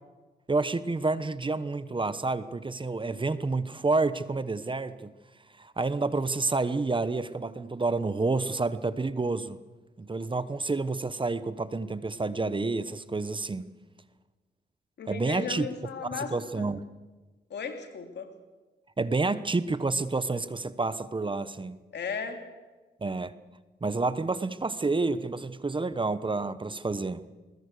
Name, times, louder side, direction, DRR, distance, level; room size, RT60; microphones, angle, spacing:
voice 1, 0.5-5.1 5.6-9.6 10.0-13.7 15.1-15.7 16.1-16.8 19.0-21.8 23.0-23.3 23.8-27.2, right 3 dB, 25° right, 14 dB, 1.0 m, -29 dB
voice 2, 15.0-16.7 17.5-18.3 21.9-22.5, left 6 dB, 75° left, 5 dB, 2.8 m, -36 dB
21.0 x 21.0 x 6.8 m, 1.2 s
cardioid pair, 70°, 18 cm